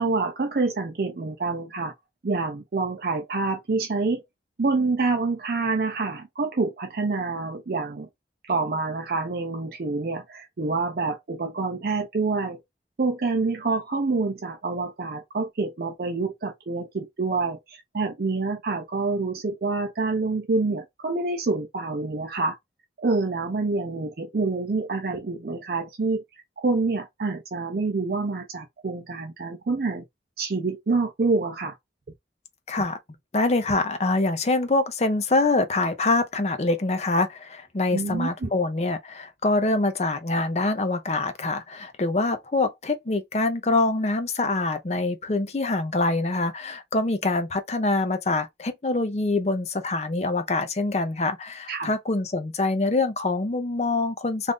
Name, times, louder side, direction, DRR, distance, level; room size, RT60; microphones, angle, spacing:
voice 1, 0.0-1.9 2.2-4.2 4.6-8.1 8.4-12.6 13.0-22.6 23.0-26.2 26.6-30.0 30.4-31.8 37.9-38.5 51.7-51.9, right 3 dB, 55° right, 0.5 m, -27 dB
voice 2, 32.7-33.0 33.3-54.5, left 2 dB, 35° left, 0.5 m, -25 dB
2.5 x 2.5 x 3.5 m
head